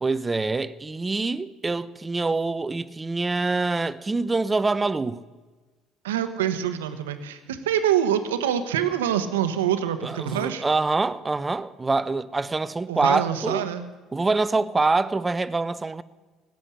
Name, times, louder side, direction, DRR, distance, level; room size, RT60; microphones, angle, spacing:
voice 1, 0.0-5.2 10.0-13.7 14.1-16.0, right 3 dB, 20° right, 0.7 m, -25 dB
voice 2, 6.0-10.7 12.9-13.9, right 10 dB, 85° right, 1.1 m, -25 dB
17.5 x 7.8 x 10.0 m
hypercardioid pair, 65°, 0 cm